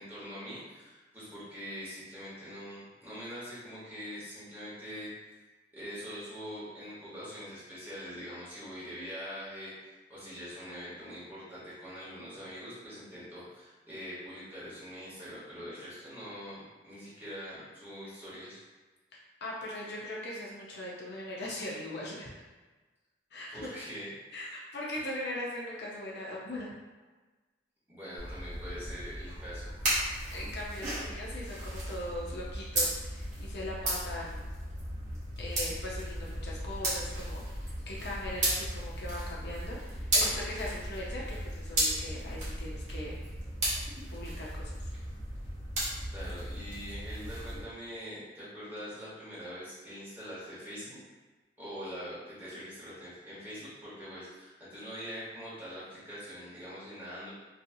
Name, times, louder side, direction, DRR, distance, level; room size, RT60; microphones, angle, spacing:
voice 1, 0.0-5.4 5.7-9.7 10.1-18.6 23.5-24.1 27.9-30.5 46.1-51.0 51.6-57.3, equal, 10° right, -11 dB, 1.1 m, -43 dB
voice 2, 19.4-22.3 23.3-23.7 24.3-26.7 30.3-34.5 35.4-43.2 44.1-44.9, left 1 dB, 65° left, -4 dB, 0.6 m, -40 dB
sound 1, 28.2-47.6, right 1 dB, 40° right, 0.9 m, -35 dB
2.6 x 2.4 x 2.6 m, 1.2 s
head